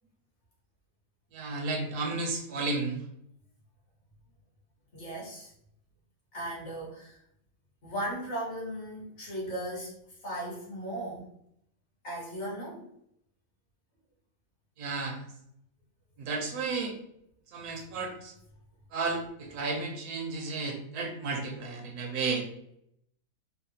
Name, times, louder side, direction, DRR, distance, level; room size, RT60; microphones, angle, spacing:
voice 1, 1.3-3.0 14.8-15.3 16.2-16.9 17.5-18.3 18.9-22.5, right 3 dB, 80° right, 2 dB, 1.2 m, -33 dB
voice 2, 4.9-5.5 6.3-7.2 7.8-11.3 12.0-12.9, right 1 dB, 50° left, -5 dB, 1.4 m, -37 dB
3.9 x 2.0 x 2.7 m, 0.74 s
omnidirectional pair, 1.6 m